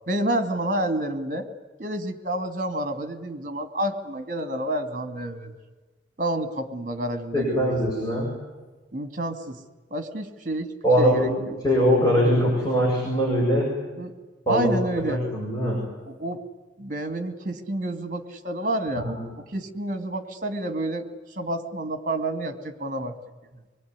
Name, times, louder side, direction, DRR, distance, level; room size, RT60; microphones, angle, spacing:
voice 1, 0.1-1.5 1.8-5.5 6.2-7.7 8.9-9.6 9.9-10.7 11.0-11.5 14.0-14.1 14.5-15.2 16.1-16.4 16.8-19.1 19.4-21.1 21.3-23.1, right 1 dB, 45° right, 8 dB, 2.4 m, -29 dB
voice 2, 7.3-8.3 10.8-13.7 14.5-14.8 15.0-15.8 19.0-19.2, equal, 20° left, -4 dB, 7.9 m, -22 dB
25.5 x 22.0 x 9.8 m, 1.3 s
head